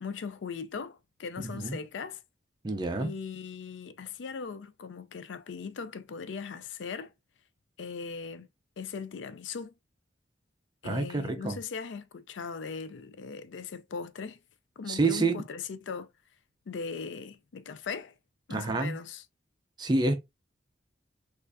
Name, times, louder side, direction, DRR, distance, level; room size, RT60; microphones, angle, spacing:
voice 1, 0.0-2.2 3.0-7.1 7.8-8.5 8.8-9.7 10.8-14.4 14.8-16.1 16.7-18.1 18.5-19.2, left 5 dB, 75° left, 0.4 m, -39 dB
voice 2, 2.6-3.1 10.8-11.6 14.9-15.4 18.5-19.0 19.8-20.1, right 3 dB, 25° right, 0.4 m, -28 dB
4.5 x 2.4 x 2.5 m
head